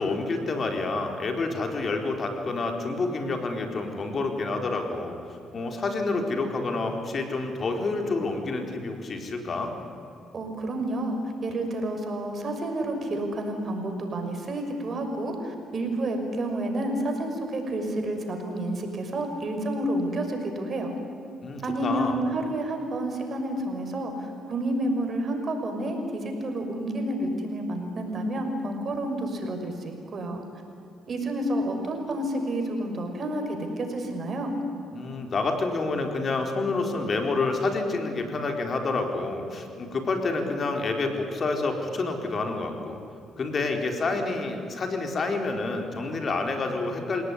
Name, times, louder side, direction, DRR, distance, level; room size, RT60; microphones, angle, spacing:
voice 1, 0.0-9.8 21.4-22.2 34.9-43.0 43.4-47.2, left 3 dB, 45° left, 4 dB, 4.2 m, -28 dB
voice 2, 10.3-20.9 21.6-30.4 31.1-34.6, right 1 dB, 50° right, 4 dB, 5.9 m, -30 dB
28.0 x 18.0 x 9.9 m, 2.6 s
supercardioid pair, 65°, 0 cm